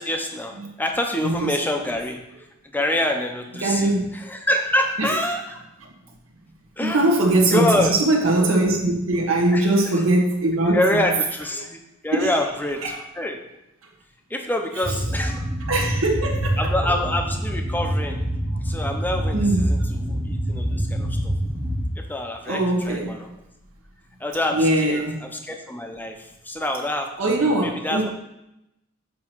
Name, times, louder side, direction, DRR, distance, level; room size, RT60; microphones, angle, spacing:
voice 1, 0.0-2.5 2.7-5.4 6.8-7.0 7.5-7.9 9.5-10.0 10.7-12.9 13.1-13.4 14.3-15.4 15.7-15.9 16.6-18.2 18.6-21.3 22.0-23.3 24.2-27.3 27.6-28.1, left 1 dB, 10° left, 3 dB, 0.7 m, -26 dB
voice 2, 1.2-1.5 3.6-4.1 5.0-5.1 6.8-10.8 12.2-12.3 12.8-13.0 15.7-16.7 19.3-19.6 22.5-23.1 24.5-25.1 27.2-28.1, right 2 dB, 80° right, -1 dB, 1.5 m, -21 dB
sound 1, 14.8-21.9, equal, 15° right, 1.0 m, -25 dB
7.3 x 3.0 x 6.0 m, 0.88 s
head